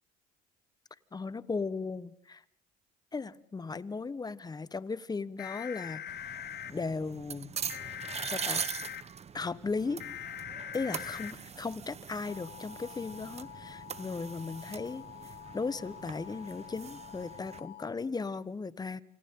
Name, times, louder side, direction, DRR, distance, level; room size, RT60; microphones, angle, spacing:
voice 1, 1.1-2.4 3.1-6.2 6.7-7.5 8.2-8.6 9.3-10.0 10.7-19.0, left 4 dB, 20° left, 17 dB, 1.2 m, -36 dB
sound 1, 5.4-6.7 7.7-9.0 10.0-11.3 12.3-17.9, left 11 dB, 60° left, 2.0 m, -44 dB
sound 2, 6.1-17.6, right 7 dB, 35° right, 1.1 m, -42 dB
29.0 x 27.0 x 3.8 m, 0.70 s
cardioid pair, 100°, 20 cm